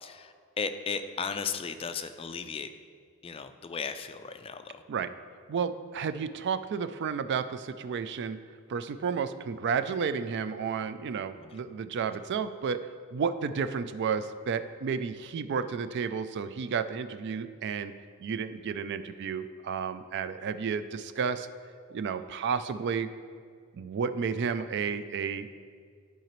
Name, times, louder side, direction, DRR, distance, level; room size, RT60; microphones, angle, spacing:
voice 1, 0.0-2.7 3.2-4.8 11.4-11.6, left 5 dB, 25° left, 9 dB, 0.3 m, -36 dB
voice 2, 5.5-8.4 8.7-12.8 13.1-17.9 18.2-21.5 21.9-23.1 23.7-25.5, right 6 dB, 55° right, 11 dB, 0.3 m, -32 dB
12.0 x 4.9 x 3.0 m, 2.1 s
head